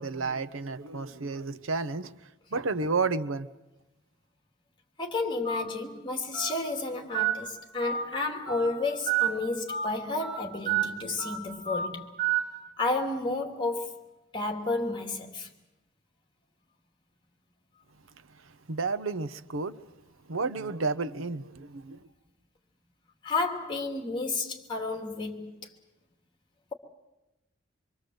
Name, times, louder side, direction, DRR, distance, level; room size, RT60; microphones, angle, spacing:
voice 1, 0.0-2.1 2.5-3.5 18.4-19.8 20.3-22.1, right 4 dB, 90° right, 0.9 m, -31 dB
voice 2, 5.0-12.1 12.8-13.9 14.3-15.5 23.2-25.6, left 3 dB, 25° left, 2.9 m, -31 dB
Telephone, 5.4-5.6 6.3-6.5 7.1-7.3 7.8-8.0 8.5-8.7 9.1-9.3 9.7-9.8 10.2-10.4 10.7-10.8 11.2-11.4 11.7-11.9 12.2-12.4, right 9 dB, 55° right, 5.3 m, -28 dB
25.0 x 24.0 x 7.9 m
head